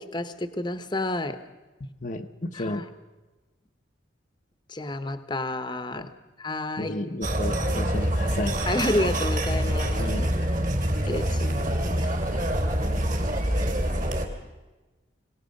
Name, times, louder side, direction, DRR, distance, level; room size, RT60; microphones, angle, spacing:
voice 1, 0.0-1.4 2.5-2.8 4.7-6.1 6.4-7.0 8.7-10.3 11.1-12.1, left 1 dB, 25° left, 10 dB, 1.1 m, -30 dB
voice 2, 2.0-2.9 6.0-6.1 6.8-8.5 10.0-10.3, left 1 dB, 40° left, 3 dB, 0.9 m, -32 dB
sound 1, 7.2-14.3, equal, 45° right, 3.0 m, -26 dB
23.5 x 18.5 x 6.6 m, 1.2 s
head